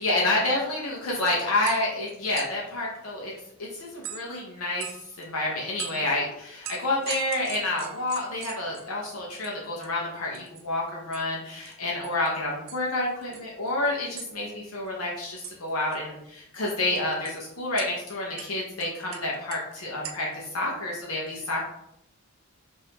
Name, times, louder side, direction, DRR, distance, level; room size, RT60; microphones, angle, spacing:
voice 1, 0.0-3.3 3.6-21.7, left 2 dB, 75° left, -3 dB, 0.9 m, -29 dB
sound 1, 1.0-1.1 1.3-2.7 4.0-4.4 4.8-5.2 5.8-6.1 6.6-9.0 9.4-9.5 9.8-9.9 10.2-10.6 11.1-11.2 11.5-11.7 12.0-12.3 12.7-12.9 13.2-13.9 14.1-14.3 15.4-15.6 15.8-16.0 16.6-17.4 17.8-17.9 18.4-19.7 20.0-20.3, right 7 dB, 65° right, 0.5 m, -40 dB
5.4 x 2.7 x 2.8 m, 0.79 s
head